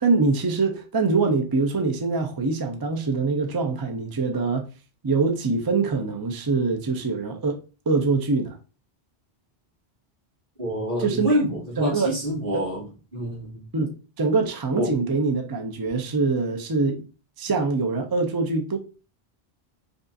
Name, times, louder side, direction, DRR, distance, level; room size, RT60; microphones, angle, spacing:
voice 1, 0.0-4.7 5.0-7.6 7.9-8.6 11.0-11.4 11.8-12.1 12.5-12.6 13.7-13.9 14.2-17.0 17.4-18.8, right 4 dB, 30° right, 0.4 m, -24 dB
voice 2, 10.6-12.8 13.1-13.6 14.8-14.9, equal, 60° right, 2.4 m, -26 dB
5.2 x 2.4 x 2.6 m
omnidirectional pair, 1.0 m